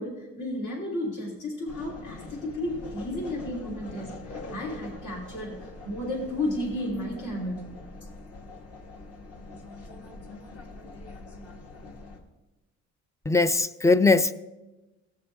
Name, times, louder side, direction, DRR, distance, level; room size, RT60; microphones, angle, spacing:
voice 1, 0.0-7.7, left 1 dB, 75° left, 3.1 m, -33 dB
sound 1, 1.7-12.2, left 2 dB, 50° left, 1.7 m, -43 dB
voice 2, 13.3-14.3, left 3 dB, 10° left, 0.4 m, -20 dB
17.0 x 6.6 x 3.4 m
cardioid pair, 90°, 30 cm